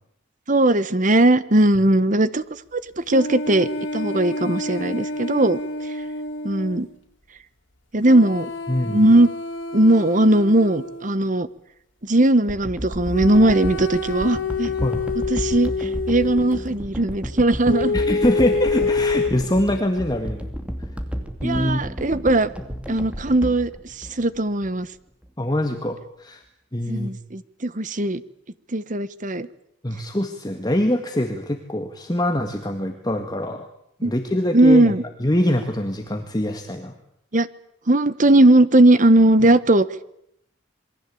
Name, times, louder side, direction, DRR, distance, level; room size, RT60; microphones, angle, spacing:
voice 1, 0.5-2.4 2.7-5.6 6.4-6.9 7.9-8.5 8.9-9.3 9.7-11.5 12.0-14.7 15.3-17.9 21.4-22.5 22.9-23.7 24.0-24.9 26.9-28.2 28.7-29.5 34.0-34.1 34.5-35.0 37.3-37.5 37.9-39.9, right 1 dB, 40° right, 15 dB, 1.2 m, -18 dB
sound 1, 3.1-6.8 8.0-11.1 13.1-16.6 17.7-19.3, left 3 dB, 80° left, 3.9 m, -27 dB
voice 2, 8.7-9.0 14.8-15.0 17.9-20.5 21.4-21.9 25.4-26.4 26.7-27.1 29.8-33.7 34.0-36.9, left 1 dB, 20° left, 4 dB, 1.9 m, -24 dB
sound 2, 12.5-24.7 25.2-25.3, equal, 5° right, 2.7 m, -32 dB
27.5 x 22.5 x 8.6 m, 0.75 s
head